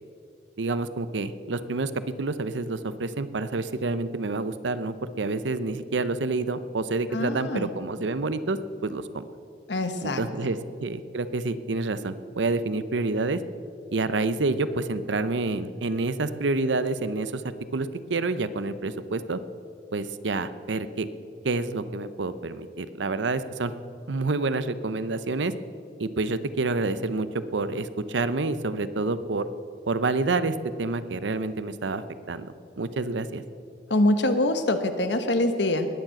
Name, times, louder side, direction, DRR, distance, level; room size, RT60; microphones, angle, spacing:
voice 1, 0.6-1.9 2.2-9.2 10.0-13.4 13.9-19.4 19.9-21.1 21.4-23.7 24.1-25.5 26.0-27.3 27.5-29.5 29.9-33.4, right 3 dB, 85° right, 13 dB, 0.7 m, -28 dB
voice 2, 7.1-7.7 9.7-10.5 33.9-35.9, left 1 dB, 75° left, 8 dB, 1.2 m, -24 dB
19.5 x 7.5 x 7.7 m, 2.4 s
head